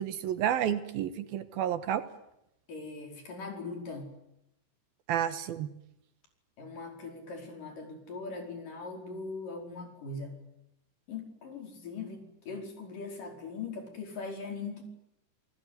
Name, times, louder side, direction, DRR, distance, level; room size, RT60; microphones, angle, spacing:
voice 1, 0.0-2.0 5.1-5.7, right 10 dB, 70° right, 11 dB, 2.9 m, -30 dB
voice 2, 2.7-4.1 6.6-10.4 11.1-14.8, left 4 dB, 55° left, 3 dB, 6.4 m, -40 dB
29.0 x 19.0 x 9.6 m, 0.82 s
omnidirectional pair, 4.7 m